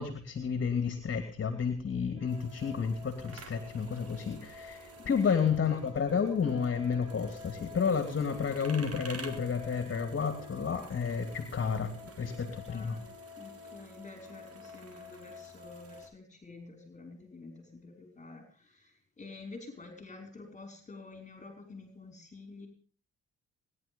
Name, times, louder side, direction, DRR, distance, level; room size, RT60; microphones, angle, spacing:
voice 1, 0.0-13.0, left 6 dB, 40° left, 8 dB, 2.9 m, -31 dB
sound 1, 2.2-16.0, left 3 dB, 80° right, 6.5 m, -50 dB
sound 2, 2.3-16.1, right 3 dB, 50° right, 4.2 m, -52 dB
voice 2, 12.4-13.1 13.4-22.7, left 3 dB, 25° left, 4 dB, 5.8 m, -49 dB
21.0 x 11.5 x 5.5 m, 0.43 s
cardioid pair, 90°, 30 cm